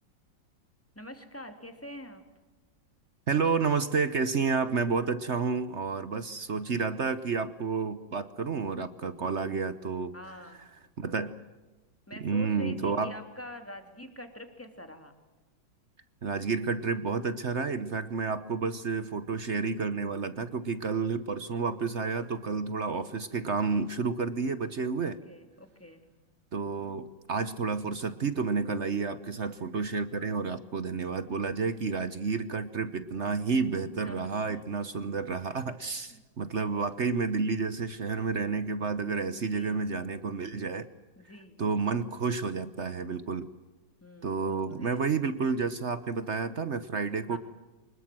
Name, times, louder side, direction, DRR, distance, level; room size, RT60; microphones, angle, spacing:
voice 1, 0.9-2.2 10.1-10.6 12.1-15.1 25.0-26.0 34.0-34.6 36.1-36.2 39.5-39.8 41.2-41.6 44.0-45.0 47.3-47.4, left 1 dB, 5° left, 6 dB, 2.6 m, -45 dB
voice 2, 3.3-10.4 11.0-11.4 12.2-13.2 16.2-25.2 26.5-40.9 41.6-43.5 44.2-47.4, right 4 dB, 45° right, 13 dB, 1.0 m, -30 dB
25.0 x 21.5 x 7.6 m, 1.2 s
omnidirectional pair, 2.1 m